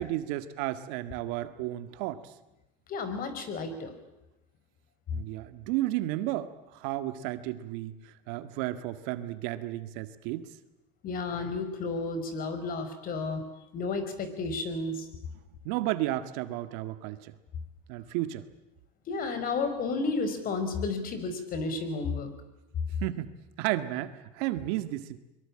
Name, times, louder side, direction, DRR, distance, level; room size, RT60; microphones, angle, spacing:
voice 1, 0.0-2.3 5.1-10.5 15.7-17.3 17.9-18.5 23.0-23.3 23.6-25.2, right 15 dB, 65° right, 11 dB, 1.8 m, -33 dB
voice 2, 2.9-3.9 11.0-13.4 13.7-15.1 19.1-22.3, left 3 dB, 45° left, 10 dB, 5.3 m, -32 dB
24.0 x 23.0 x 8.8 m, 0.94 s
supercardioid pair, 110°, 21 cm